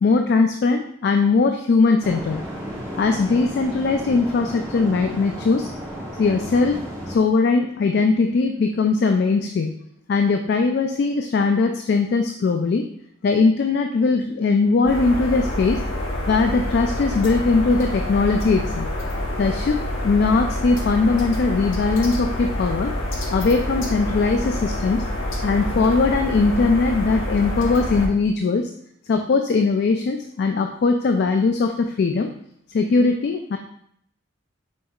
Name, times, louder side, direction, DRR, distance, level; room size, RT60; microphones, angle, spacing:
voice 1, 0.0-2.4 3.0-5.7 6.2-6.8 7.1-9.7 10.1-12.8 13.2-15.8 16.3-18.9 19.4-19.8 20.0-22.9 23.3-25.0 25.4-28.7 29.1-32.3 32.7-33.6, left 4 dB, 55° left, 5 dB, 0.3 m, -20 dB
sound 1, 2.0-7.2, equal, 15° right, 0.9 m, -33 dB
sound 2, 14.9-28.1, left 1 dB, 70° left, 0.9 m, -27 dB
5.3 x 4.2 x 2.3 m, 0.68 s
head